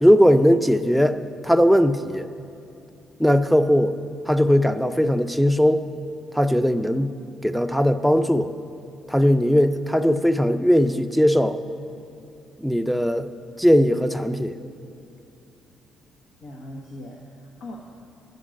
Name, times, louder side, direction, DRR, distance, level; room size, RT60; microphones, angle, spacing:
voice 1, 0.0-2.3 3.2-4.0 4.3-5.8 6.3-7.1 7.4-8.5 9.1-11.6 12.6-13.3 13.6-14.6, equal, ahead, 11 dB, 0.5 m, -19 dB
voice 2, 16.4-18.0, left 1 dB, 80° left, 0 dB, 1.1 m, -40 dB
11.0 x 8.0 x 6.3 m, 2.6 s
cardioid pair, 90°, 0 cm